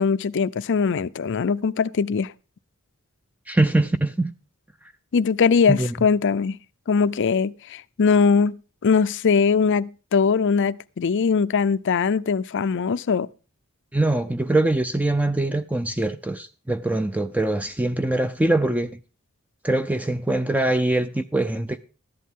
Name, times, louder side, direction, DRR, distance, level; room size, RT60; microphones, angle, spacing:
voice 1, 0.0-2.3 5.1-6.6 6.9-13.3, left 5 dB, 55° left, 0.5 m, -21 dB
voice 2, 3.5-4.3 5.7-5.9 13.9-18.9 19.6-21.8, right 2 dB, 5° right, 0.5 m, -23 dB
14.0 x 11.0 x 3.7 m
head